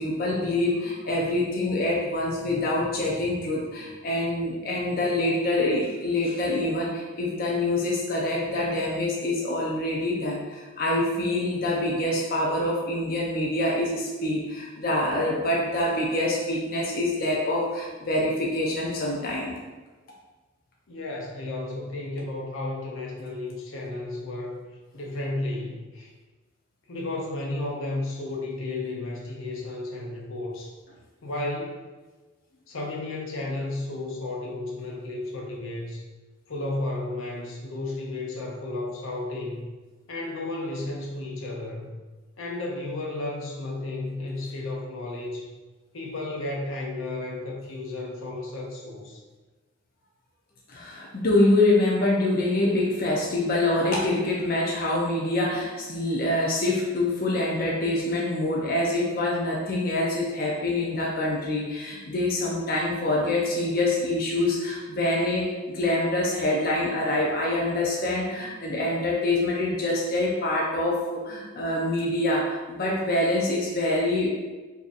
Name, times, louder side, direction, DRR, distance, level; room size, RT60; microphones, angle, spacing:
voice 1, 0.0-19.6 50.7-74.3, left 1 dB, 45° left, -3 dB, 0.5 m, -25 dB
voice 2, 20.9-24.6 24.9-26.1 26.9-30.7 31.2-31.9 32.7-36.0 36.5-39.7 40.1-41.9 42.4-45.5 45.9-49.2, left 2 dB, 80° left, -2 dB, 0.7 m, -33 dB
3.8 x 2.7 x 2.4 m, 1.2 s
head